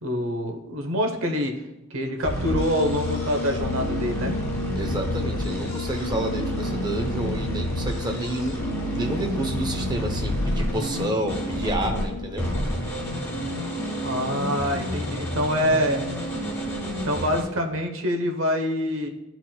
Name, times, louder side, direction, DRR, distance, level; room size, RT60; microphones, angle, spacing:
voice 1, 0.0-1.5 1.9-4.4 14.0-16.1 17.0-19.1, equal, 85° right, 4 dB, 0.8 m, -25 dB
sound 1, 2.2-12.0 12.4-17.4, equal, 15° left, 1.6 m, -29 dB
sound 2, 2.4-17.2, left 5 dB, 75° left, 0.3 m, -35 dB
voice 2, 4.7-8.6 8.9-12.5, right 1 dB, 20° right, 4 dB, 0.7 m, -29 dB
11.5 x 4.0 x 2.2 m, 0.96 s
head